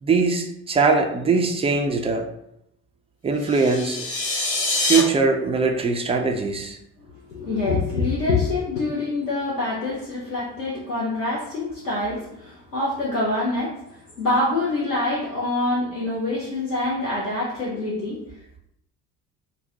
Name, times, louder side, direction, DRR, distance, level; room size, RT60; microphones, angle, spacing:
voice 1, 0.0-2.3 3.2-4.1 4.8-6.8, right 4 dB, 15° right, 3 dB, 0.4 m, -21 dB
sound 1, 3.4-5.0, left 2 dB, 55° left, 1.3 m, -25 dB
voice 2, 7.0-18.6, left 2 dB, 90° left, -6 dB, 0.6 m, -26 dB
5.2 x 2.1 x 2.7 m, 0.79 s
figure-of-eight pair, 50°, 46 cm